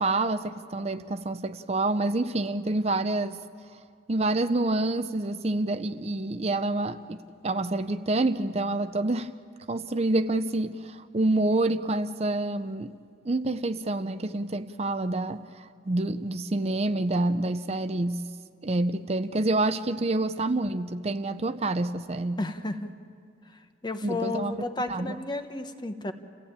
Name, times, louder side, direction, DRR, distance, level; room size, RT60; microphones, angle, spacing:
voice 1, 0.0-3.4 4.1-9.3 9.7-12.9 13.2-18.2 18.6-22.4 24.0-24.6 24.9-25.2, right 2 dB, 35° right, 10 dB, 0.6 m, -27 dB
voice 2, 22.4-22.9 23.5-26.1, left 2 dB, 25° left, 7 dB, 1.0 m, -33 dB
29.0 x 15.5 x 8.8 m, 2.3 s
head